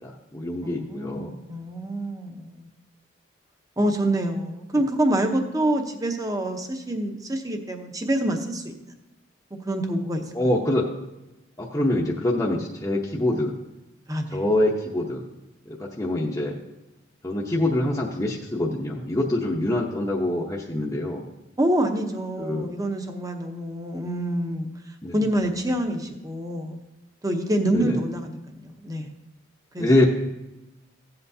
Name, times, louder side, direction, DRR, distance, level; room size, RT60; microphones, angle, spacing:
voice 1, 0.0-1.3 10.3-10.9 11.6-13.5 14.3-15.2 15.8-16.6 17.2-21.2 22.4-22.7 25.0-25.2 27.7-28.0 29.8-30.1, left 1 dB, 15° left, -4 dB, 0.8 m, -25 dB
voice 2, 0.6-2.7 3.8-8.8 9.6-10.2 14.1-14.4 21.6-24.7 25.1-26.8 27.2-29.1 29.7-29.9, right 1 dB, 20° right, 5 dB, 0.8 m, -26 dB
15.0 x 7.9 x 2.7 m, 0.99 s
head